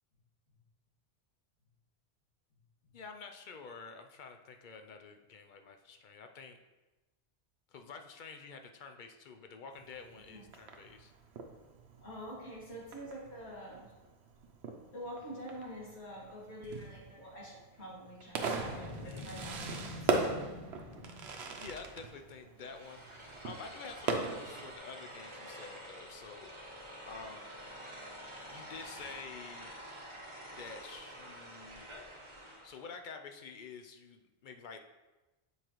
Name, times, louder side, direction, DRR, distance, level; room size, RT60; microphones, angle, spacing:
voice 1, 2.9-6.6 7.7-11.1 19.0-19.4 21.5-27.5 28.5-29.7 30.6-31.9 32.6-34.8, left 5 dB, 55° left, 5 dB, 0.6 m, -49 dB
Fireworks, 9.7-24.8, right 4 dB, 80° right, 0.9 m, -40 dB
voice 2, 12.0-13.9 14.9-20.4, equal, 85° left, -7 dB, 2.5 m, -46 dB
Boom, 18.5-21.6, left 1 dB, 35° left, 0.9 m, -46 dB
sound 1, 22.6-32.9, equal, 30° right, 0.9 m, -48 dB
7.1 x 4.8 x 3.0 m, 1.1 s
omnidirectional pair, 1.1 m